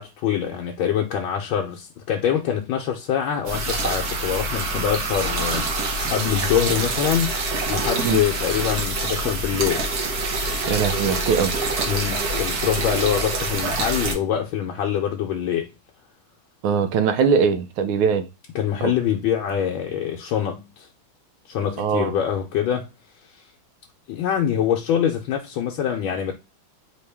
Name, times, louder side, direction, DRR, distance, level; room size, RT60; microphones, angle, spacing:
voice 1, 0.0-9.9 11.9-15.7 18.5-20.9 21.5-22.9 24.1-26.3, left 9 dB, 80° left, 1.4 m, -24 dB
sound 1, 3.5-14.1, right 2 dB, 55° right, 1.3 m, -26 dB
voice 2, 10.7-11.5 16.6-18.3 18.8-18.9 21.8-22.1, right 6 dB, 85° right, 1.5 m, -21 dB
4.4 x 3.0 x 3.3 m
omnidirectional pair, 2.2 m